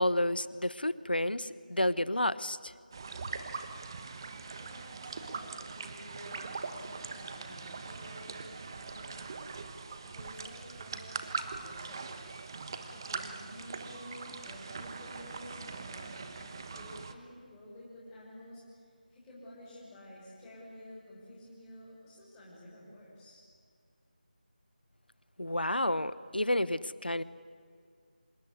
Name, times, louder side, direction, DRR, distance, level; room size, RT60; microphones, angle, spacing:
voice 1, 0.0-2.7 25.4-27.2, left 1 dB, 85° left, 17 dB, 1.1 m, -30 dB
sound 1, 2.9-17.1, right 4 dB, 25° right, 1.3 m, -42 dB
voice 2, 4.5-9.5 10.0-12.1 12.9-23.4, left 1 dB, 10° left, -7 dB, 6.0 m, -51 dB
26.0 x 20.0 x 9.6 m, 2.2 s
figure-of-eight pair, 165°, 5 cm